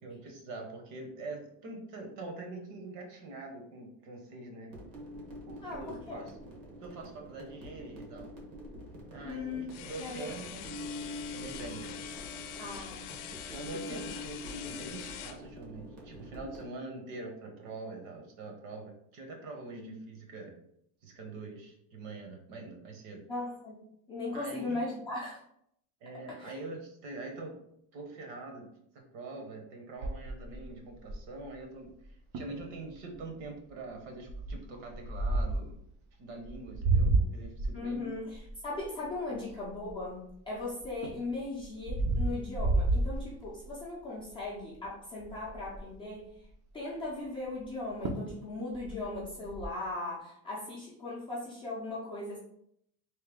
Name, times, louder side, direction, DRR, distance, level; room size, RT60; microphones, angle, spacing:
voice 1, 0.0-4.7 5.5-6.3 6.8-8.3 9.1-10.9 11.3-11.9 13.5-20.5 21.0-23.2 24.3-24.8 26.0-27.5 27.9-35.8 36.2-38.1, right 2 dB, 60° right, 2 dB, 1.1 m, -44 dB
sound 1, 4.7-16.7, left 1 dB, 80° right, 1.5 m, -45 dB
voice 2, 5.6-6.2 9.2-10.7 12.6-13.1 13.7-14.0 19.8-20.0 23.3-23.8 24.1-25.4 26.3-26.5 37.7-46.5 46.7-52.4, left 2 dB, 10° left, -7 dB, 0.4 m, -38 dB
sound 2, 9.7-15.4, left 10 dB, 80° left, 0.5 m, -44 dB
sound 3, 30.0-31.5 32.0-32.1 32.3-32.6 33.1-33.4 34.3-35.7 36.4-40.3 40.8-43.8 44.3-44.6 44.8-44.9 45.2-45.9 47.6-47.7 48.0-48.4 48.7-49.7, right 2 dB, 40° right, 0.5 m, -31 dB
3.3 x 2.7 x 3.5 m, 0.72 s
cardioid pair, 175°, 42 cm